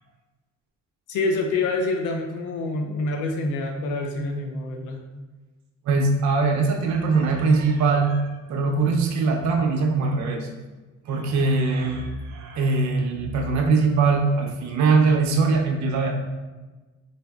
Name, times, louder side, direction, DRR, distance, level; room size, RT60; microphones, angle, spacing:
voice 1, 1.1-5.0, left 2 dB, 80° left, 3 dB, 0.5 m, -26 dB
voice 2, 5.8-10.5 11.1-16.1, right 4 dB, 70° right, 1 dB, 0.5 m, -22 dB
3.8 x 2.6 x 2.2 m, 1.2 s
cardioid pair, 90°, 30 cm